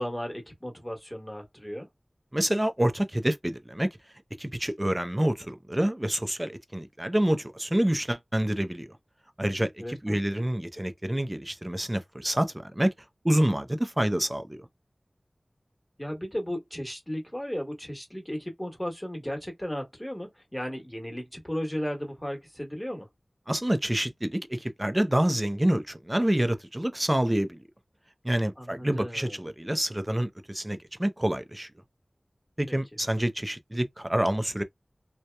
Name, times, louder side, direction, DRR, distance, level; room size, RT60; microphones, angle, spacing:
voice 1, 0.0-1.9 9.8-10.2 16.0-23.1 28.6-29.4 32.7-32.8, equal, 15° left, 1.2 m, -35 dB
voice 2, 2.3-3.9 4.4-8.9 9.4-12.9 13.2-14.7 23.5-27.6 28.2-31.7 32.6-34.6, right 1 dB, 20° right, 0.5 m, -27 dB
2.8 x 2.1 x 2.2 m
wide cardioid pair, 50°, 0 cm